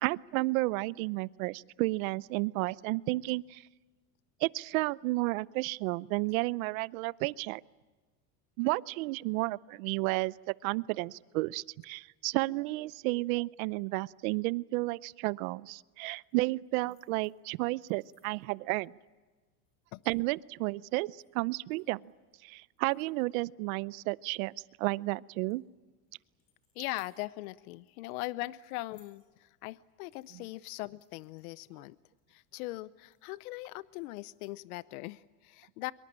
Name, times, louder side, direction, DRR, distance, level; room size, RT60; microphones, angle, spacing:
voice 1, 0.0-3.6 4.4-7.6 8.6-18.9 20.1-22.0 22.4-24.5 24.8-25.6 30.3-30.4, right 22 dB, 70° right, 21 dB, 0.7 m, -32 dB
sound 1, 16.2-34.8, left 5 dB, 30° left, 7.5 m, -74 dB
voice 2, 26.8-32.0 32.3-35.9, left 19 dB, 75° left, 18 dB, 0.8 m, -40 dB
24.5 x 23.0 x 8.7 m, 1.3 s
supercardioid pair, 140°, 43 cm